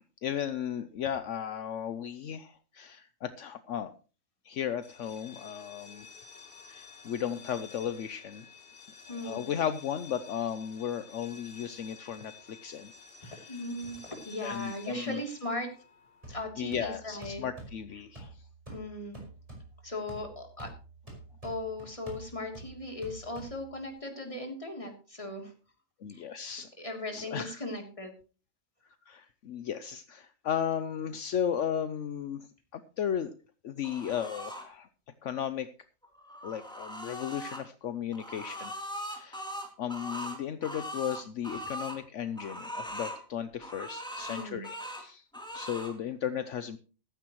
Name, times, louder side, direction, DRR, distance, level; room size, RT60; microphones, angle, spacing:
voice 1, 0.0-3.9 4.4-6.1 6.7-8.5 9.2-12.9 13.2-13.6 14.4-15.2 16.3-18.5 26.0-26.7 27.1-27.6 29.1-32.5 32.7-33.3 33.6-34.9 35.2-35.7 36.4-38.7 39.1-39.4 39.8-45.3 45.5-46.8, left 9 dB, 70° left, 11 dB, 1.1 m, -35 dB
sound 1, 4.8-16.5, left 5 dB, 45° left, 1.7 m, -52 dB
voice 2, 9.1-9.5 13.5-15.7 16.3-17.5 18.7-19.2 19.8-20.7 21.4-25.5 26.1-28.1 44.3-44.6, left 1 dB, 25° left, 2 dB, 3.2 m, -38 dB
sound 2, 16.2-24.0, right 2 dB, 25° right, 5.5 m, -48 dB
sound 3, 33.8-34.6 36.0-37.6 38.1-42.0 42.4-43.2 43.6-45.0 45.3-45.9, equal, 5° left, 3.1 m, -40 dB
15.0 x 13.5 x 3.1 m, 0.35 s
omnidirectional pair, 1.4 m